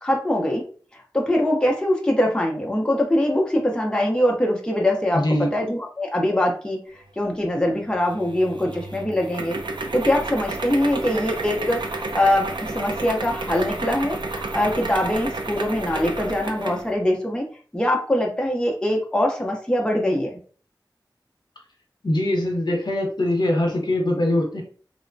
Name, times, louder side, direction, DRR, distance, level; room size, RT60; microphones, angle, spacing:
voice 1, 0.0-0.6 0.9-6.8 7.2-9.6 9.9-17.4 17.7-20.3, left 1 dB, 10° left, 0 dB, 0.6 m, -23 dB
voice 2, 5.1-5.5 22.0-24.6, left 1 dB, 65° left, 1 dB, 0.8 m, -22 dB
sound 1, 8.1-16.9, right 2 dB, 75° right, 0.4 m, -31 dB
2.9 x 2.0 x 2.5 m, 0.42 s
wide cardioid pair, 60°, 8 cm